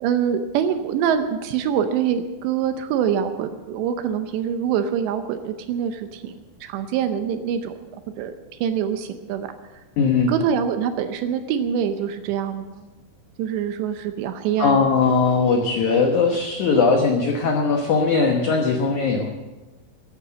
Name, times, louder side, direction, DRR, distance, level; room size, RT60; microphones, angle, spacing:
voice 1, 0.0-6.4 6.6-7.7 8.2-8.3 8.6-9.5 9.8-9.9 10.3-12.9 13.4-14.8, right 8 dB, 80° right, 8 dB, 3.0 m, -24 dB
voice 2, 10.0-10.3 14.6-19.3, left 4 dB, 75° left, 3 dB, 1.7 m, -19 dB
15.0 x 9.9 x 7.5 m, 1.2 s
omnidirectional pair, 5.1 m